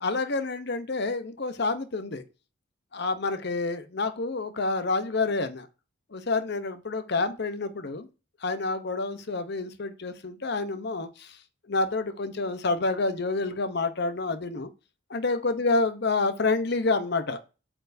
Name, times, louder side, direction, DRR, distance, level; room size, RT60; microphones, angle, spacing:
voice 1, 0.0-2.2 2.9-5.7 6.1-8.1 8.4-11.3 11.7-14.7 15.1-17.4, left 3 dB, 55° left, 11 dB, 0.7 m, -28 dB
8.0 x 4.5 x 2.6 m, 0.31 s
head